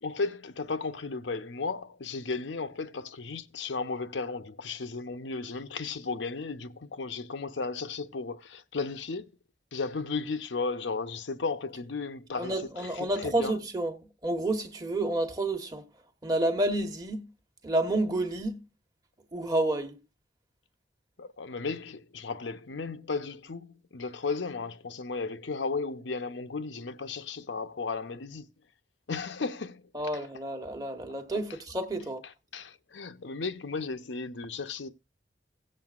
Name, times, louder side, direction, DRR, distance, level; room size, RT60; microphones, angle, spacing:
voice 1, 0.0-9.3 9.7-13.6 21.2-28.5 29.1-29.8 30.1-30.2 31.3-31.4 32.5-34.9, left 4 dB, 90° left, 0.7 m, -35 dB
voice 2, 12.4-15.9 16.2-17.3 17.6-18.6 19.3-20.0 29.9-32.2, right 2 dB, 20° right, 1.1 m, -30 dB
17.0 x 7.6 x 2.4 m
head